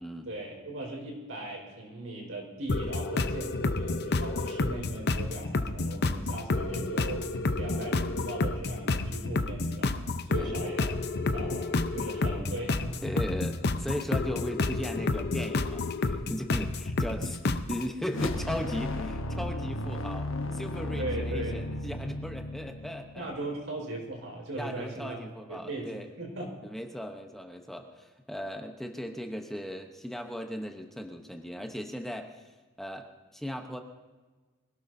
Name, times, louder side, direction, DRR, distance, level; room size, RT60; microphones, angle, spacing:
voice 1, 0.2-7.2 7.5-13.0 21.0-21.6 23.1-25.2 25.5-26.6, right 2 dB, 75° right, 0 dB, 4.7 m, -39 dB
sound 1, 2.7-17.9, left 3 dB, 55° left, 0.7 m, -30 dB
voice 2, 13.0-23.3 24.5-26.1 26.6-32.4 32.8-33.8, equal, ahead, 3 dB, 0.9 m, -37 dB
sound 2, 18.1-23.5, left 1 dB, 80° left, 1.0 m, -34 dB
25.0 x 17.5 x 2.7 m, 1.3 s
head